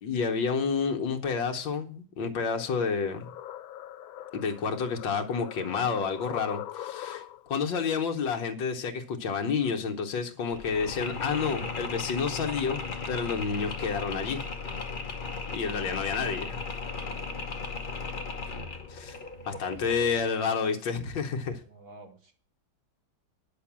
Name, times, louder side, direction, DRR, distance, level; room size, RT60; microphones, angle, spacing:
voice 1, 0.0-3.3 4.3-7.2 7.5-12.8 13.1-14.4 15.5-16.6 18.9-19.2 19.5-21.6, left 5 dB, 70° left, 1.8 m, -29 dB
sound 1, 2.5-7.6, left 12 dB, 90° left, 1.5 m, -42 dB
Mechanisms, 10.5-20.3, left 4 dB, 40° left, 0.8 m, -36 dB
voice 2, 17.0-17.7 21.6-22.3, right 2 dB, 80° right, 3.1 m, -51 dB
9.8 x 6.5 x 7.3 m
omnidirectional pair, 2.2 m